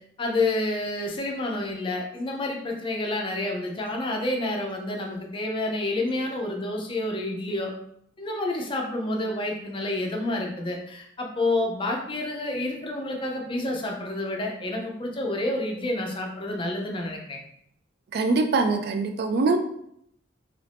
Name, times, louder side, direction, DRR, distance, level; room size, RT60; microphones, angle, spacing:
voice 1, 0.2-7.7 8.2-17.4, left 2 dB, 25° left, 0 dB, 0.5 m, -29 dB
voice 2, 18.1-19.6, right 3 dB, 55° right, 5 dB, 0.3 m, -23 dB
3.0 x 2.5 x 3.3 m, 0.72 s
head